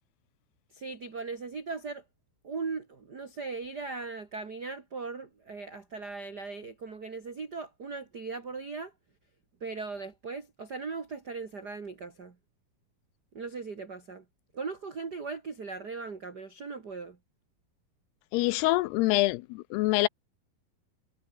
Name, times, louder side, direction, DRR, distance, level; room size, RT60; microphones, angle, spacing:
voice 1, 0.7-2.0 2.4-8.9 9.6-12.4 13.3-14.2 14.5-17.2, right 4 dB, 30° right, 2.3 m, -38 dB
voice 2, 18.3-20.1, left 20 dB, 85° left, 2.6 m, -25 dB
omnidirectional pair, 4.6 m